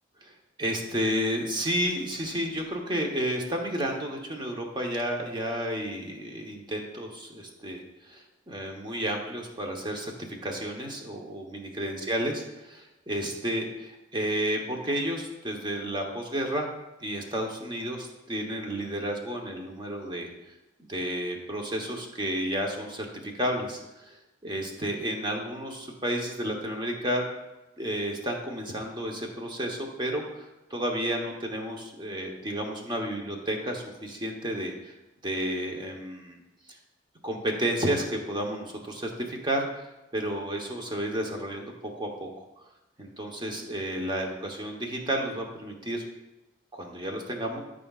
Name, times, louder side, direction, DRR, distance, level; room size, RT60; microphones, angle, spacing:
voice 1, 0.2-10.1 10.4-16.7 17.0-20.3 20.9-24.2 24.4-27.2 27.8-34.9 35.2-36.4 36.7-36.8 37.2-42.5 43.0-46.1 46.7-47.6, equal, 25° right, 1 dB, 1.0 m, -31 dB
12.5 x 5.1 x 2.4 m, 1.0 s
head